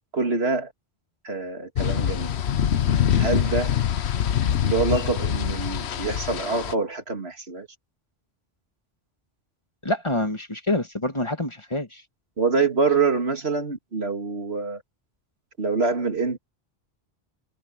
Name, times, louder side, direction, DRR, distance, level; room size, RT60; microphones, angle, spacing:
voice 1, 0.1-0.7 1.2-2.4 3.1-3.8 4.6-7.7 12.4-14.8 15.6-16.4, right 4 dB, 75° right, 2.6 m, -25 dB
sound 1, 1.8-6.7, left 9 dB, 85° left, 1.1 m, -24 dB
voice 2, 9.8-12.0, left 1 dB, 25° left, 2.0 m, -26 dB
omnidirectional pair, 1.1 m